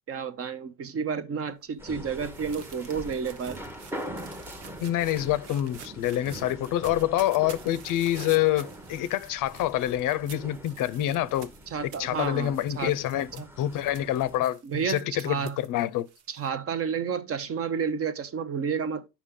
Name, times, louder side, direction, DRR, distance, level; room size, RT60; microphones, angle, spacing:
voice 1, 0.1-3.6 11.7-12.9 13.4-13.5 14.6-15.6 16.3-19.1, right 6 dB, 35° right, 0.7 m, -31 dB
sound 1, 1.5-16.5, right 7 dB, 70° right, 1.1 m, -50 dB
sound 2, 1.8-14.4, equal, 5° right, 0.8 m, -43 dB
voice 2, 4.8-11.5 11.8-16.1, left 13 dB, 50° left, 0.6 m, -27 dB
8.3 x 5.8 x 3.6 m
supercardioid pair, 110°, 40 cm